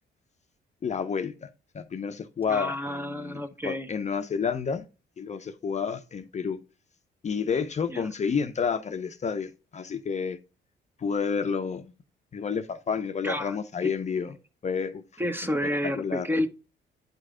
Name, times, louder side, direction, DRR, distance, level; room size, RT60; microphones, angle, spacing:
voice 1, 0.8-1.5 1.7-4.9 5.2-6.6 7.2-10.4 11.0-11.9 12.3-14.3 14.6-15.0 15.8-16.3, left 6 dB, 35° left, 0.6 m, -30 dB
voice 2, 2.5-3.9 7.9-8.1 13.2-13.6 13.8-13.9 15.2-16.5, left 1 dB, 10° right, 0.8 m, -30 dB
9.0 x 3.3 x 3.6 m
cardioid pair, 90°, 20 cm